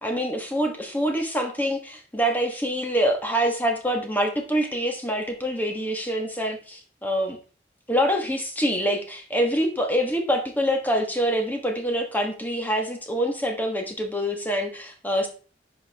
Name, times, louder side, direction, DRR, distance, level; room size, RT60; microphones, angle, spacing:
voice 1, 0.0-7.4 7.9-15.3, equal, 10° left, 3 dB, 1.3 m, -25 dB
10.5 x 4.7 x 3.4 m, 0.39 s
head